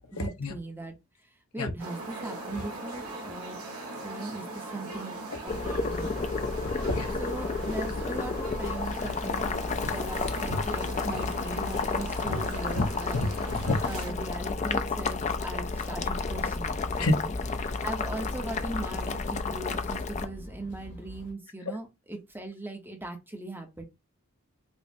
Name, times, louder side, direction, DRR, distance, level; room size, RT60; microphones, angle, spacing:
voice 1, 0.1-1.0 1.5-3.6 4.0-5.2 5.4-6.4 7.2-13.2 13.8-17.3 17.6-23.8, right 2 dB, 10° right, 0.7 m, -39 dB
sound 1, 1.8-14.1, right 2 dB, 80° right, 1.2 m, -40 dB
Boiling, 5.5-20.2, left 4 dB, 30° left, 0.3 m, -31 dB
voice 2, 6.6-7.1 10.5-10.6 12.3-12.4 12.7-12.9 13.1-13.8 17.0-17.1, left 2 dB, 80° left, 0.8 m, -28 dB
sound 2, 15.6-21.3, left 1 dB, 50° left, 1.2 m, -44 dB
5.1 x 2.0 x 2.6 m
head